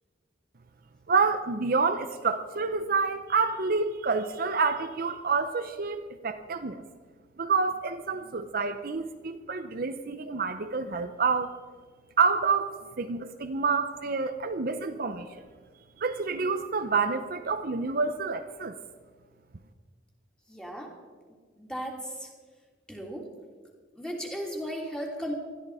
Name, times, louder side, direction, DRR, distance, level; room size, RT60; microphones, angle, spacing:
voice 1, 1.1-6.8 7.4-11.5 12.2-15.4 16.0-18.8, right 4 dB, 50° right, 8 dB, 0.7 m, -28 dB
voice 2, 20.5-20.9 21.6-22.3 22.9-23.3 23.9-25.3, equal, 5° left, -1 dB, 3.1 m, -35 dB
20.5 x 14.0 x 4.9 m, 1.6 s
head